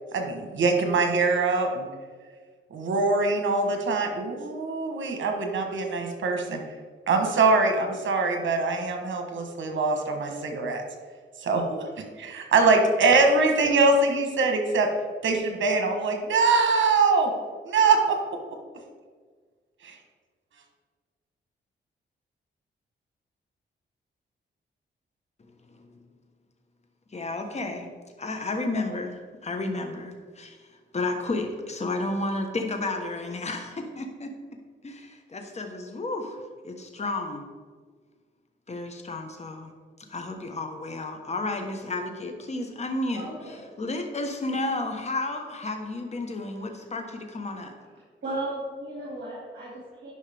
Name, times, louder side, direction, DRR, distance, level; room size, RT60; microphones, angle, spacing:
voice 1, 0.1-1.9 2.7-6.6 7.1-10.8 11.4-11.9 12.2-14.9 15.2-17.3 17.6-18.2 19.8-20.0, right 3 dB, 80° right, 4 dB, 1.3 m, -23 dB
voice 2, 27.1-27.9 28.2-30.6 30.9-34.3 34.8-36.4 36.6-37.4 38.7-39.7 40.1-47.7, left 2 dB, 35° left, 4 dB, 1.2 m, -32 dB
voice 3, 43.1-43.6 46.8-46.9 48.2-50.1, right 2 dB, 60° right, -6 dB, 2.4 m, -35 dB
11.0 x 5.5 x 3.5 m, 1.6 s
cardioid pair, 90°, 20 cm